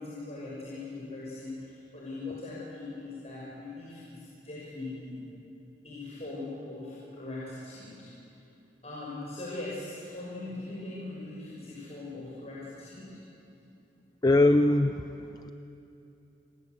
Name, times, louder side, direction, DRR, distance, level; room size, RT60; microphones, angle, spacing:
voice 1, 0.0-5.2 5.8-8.1 8.8-13.2, left 2 dB, 40° left, -7 dB, 6.3 m, -40 dB
voice 2, 14.2-15.5, left 2 dB, 25° left, 9 dB, 0.6 m, -23 dB
29.5 x 21.5 x 8.2 m, 2.9 s
head